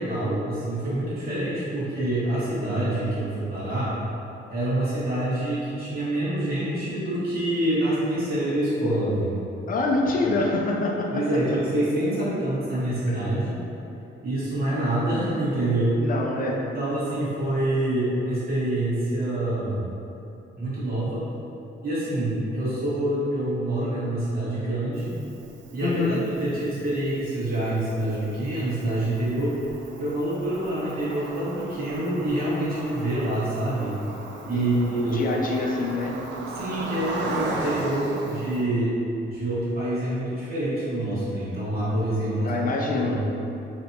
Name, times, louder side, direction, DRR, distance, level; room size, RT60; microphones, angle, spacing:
voice 1, 0.0-4.0 4.5-9.3 10.2-10.3 11.1-13.6 14.2-16.0 16.5-19.9 20.6-21.3 21.8-25.1 25.7-29.6 30.0-34.0 34.4-35.2 36.5-38.9 39.2-42.5 42.9-43.2, right 1 dB, 50° right, -9 dB, 1.4 m, -26 dB
voice 2, 9.7-11.4 13.1-13.4 15.9-16.7 25.8-26.2 34.5-36.3 42.4-43.3, left 3 dB, 45° left, 0 dB, 0.4 m, -26 dB
Cricket, 24.9-38.6, right 2 dB, 65° right, 0.4 m, -37 dB
3.4 x 2.8 x 2.6 m, 2.8 s
cardioid pair, 90°, 20 cm